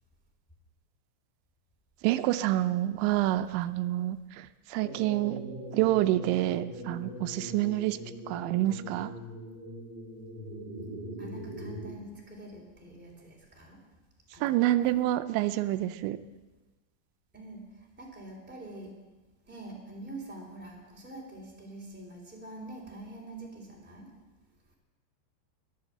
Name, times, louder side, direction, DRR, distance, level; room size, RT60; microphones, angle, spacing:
voice 1, 2.0-5.4 5.7-8.0 8.3-9.1 14.4-16.2, right 15 dB, 90° right, 11 dB, 3.0 m, -27 dB
sound 1, 4.8-11.9, right 1 dB, 40° left, 8.7 m, -41 dB
voice 2, 11.2-13.8 14.3-14.9 15.4-15.5 17.3-18.9 19.5-24.1, right 2 dB, 5° right, -2 dB, 2.8 m, -45 dB
22.0 x 7.9 x 7.7 m, 1.2 s
omnidirectional pair, 5.2 m